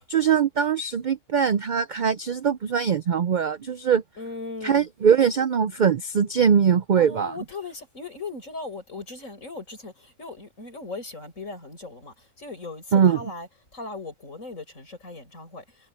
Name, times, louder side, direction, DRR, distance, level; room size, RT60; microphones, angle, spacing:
voice 1, 0.1-4.0 4.6-7.3 12.9-13.3, right 7 dB, 60° right, 0.4 m, -21 dB
voice 2, 4.2-4.9 7.0-13.5 13.7-15.6, left 3 dB, 65° left, 7.2 m, -38 dB
omnidirectional pair, 1.4 m